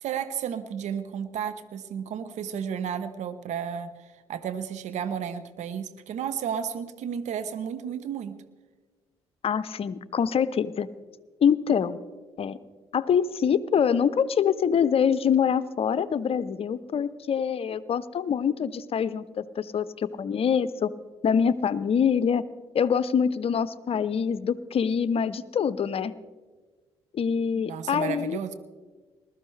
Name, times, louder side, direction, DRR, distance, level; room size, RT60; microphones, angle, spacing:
voice 1, 0.0-8.4 27.5-28.5, right 8 dB, 65° right, 12 dB, 0.8 m, -33 dB
voice 2, 9.4-10.9 11.4-12.0 12.4-12.6 12.9-20.9 21.2-22.4 22.7-26.1 27.1-28.4, left 7 dB, 50° left, 15 dB, 0.6 m, -25 dB
20.5 x 13.0 x 3.2 m, 1.4 s
hypercardioid pair, 50°, 13 cm